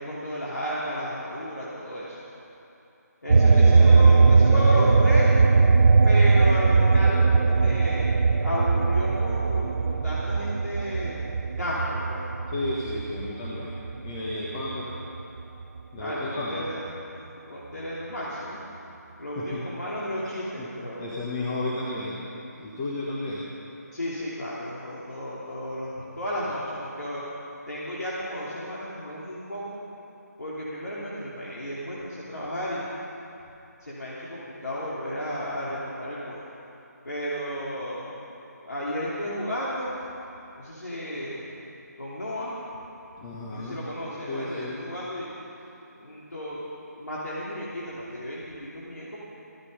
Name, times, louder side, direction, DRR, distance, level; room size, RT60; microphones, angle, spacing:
voice 1, 0.0-2.2 3.2-5.3 6.0-8.1 8.4-11.2 11.6-12.3 16.0-17.1 17.5-18.6 19.2-21.1 23.9-27.2 27.7-29.8 30.4-32.8 33.8-36.4 37.0-38.1 38.6-40.0 40.5-41.4 42.0-42.5 43.5-45.3 45.9-46.6 46.9-49.2, equal, 75° left, -8 dB, 3.1 m, -33 dB
sound 1, 3.3-14.2 14.6-16.0, right 4 dB, 60° right, 0.5 m, -20 dB
voice 2, 3.4-4.9 12.5-13.7 14.0-14.9 15.9-16.7 19.4-19.6 20.6-20.7 21.0-22.2 22.5-23.5 43.2-43.8 44.3-44.8, left 2 dB, 25° left, -4 dB, 1.5 m, -33 dB
15.0 x 13.0 x 5.5 m, 2.8 s
figure-of-eight pair, 155°, 9 cm